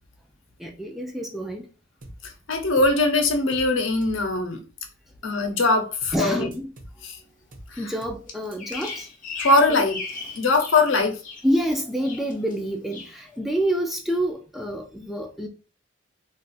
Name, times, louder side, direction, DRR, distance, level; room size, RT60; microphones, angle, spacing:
voice 1, 0.6-1.6 6.1-6.7 7.8-9.1 9.7-9.8 11.4-15.5, right 1 dB, ahead, 0.4 m, -27 dB
sound 1, 2.0-2.3 2.5-3.0 3.5-3.8 4.0-4.3 6.0-6.3 6.5-7.0 7.5-7.8 8.0-8.3 8.5-8.6, right 1 dB, 45° right, 0.7 m, -44 dB
voice 2, 2.2-4.6 5.2-6.5 7.0-7.2 7.7-7.8 9.4-10.0 10.3-11.2, left 2 dB, 75° left, 0.7 m, -21 dB
Bird vocalization bird call bird song, 8.3-10.8 11.1-11.7 12.0-12.6 12.9-13.2, left 4 dB, 40° left, 0.6 m, -36 dB
2.5 x 2.4 x 3.9 m
head